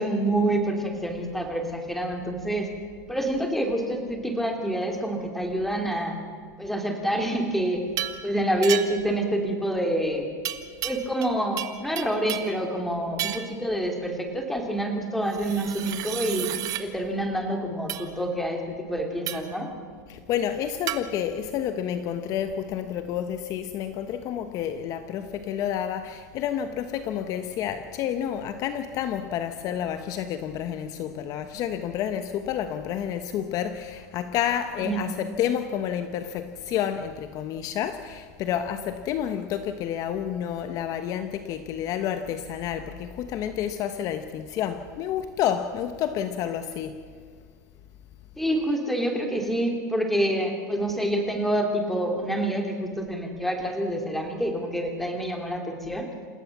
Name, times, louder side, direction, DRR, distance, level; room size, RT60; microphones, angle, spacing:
voice 1, 0.0-2.7 3.1-6.2 6.6-7.8 8.2-10.3 10.8-16.5 16.8-19.7 34.8-35.0 48.4-56.1, right 1 dB, ahead, 3.0 m, -27 dB
sound 1, 8.0-8.2 8.6-9.1 10.4-11.3 11.6-12.6 13.2-13.6 15.3-16.8 17.9-18.1 19.3-19.6 20.9-21.0, right 13 dB, 40° right, 1.5 m, -32 dB
voice 2, 20.1-47.0, left 9 dB, 35° left, 1.1 m, -29 dB
28.0 x 16.5 x 7.3 m
supercardioid pair, 145°, 10 cm